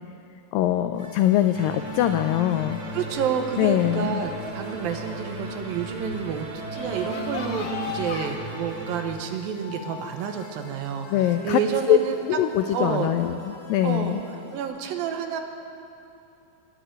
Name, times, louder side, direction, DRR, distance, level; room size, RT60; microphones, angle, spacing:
voice 1, 0.5-2.8 3.6-4.2 11.1-11.6 11.9-12.0 12.4-14.2, left 12 dB, 90° left, 9 dB, 2.0 m, -22 dB
sound 1, 0.9-14.6, right 1 dB, 45° left, 3.8 m, -44 dB
sound 2, 1.5-9.1, equal, 45° right, 1.9 m, -36 dB
sound 3, 1.8-8.3, left 4 dB, 70° left, 3.0 m, -39 dB
voice 2, 2.9-6.5 6.7-12.2 12.7-13.1 13.8-15.4, right 7 dB, 75° right, 5 dB, 2.5 m, -29 dB
20.0 x 8.0 x 8.9 m, 2.8 s
omnidirectional pair, 4.6 m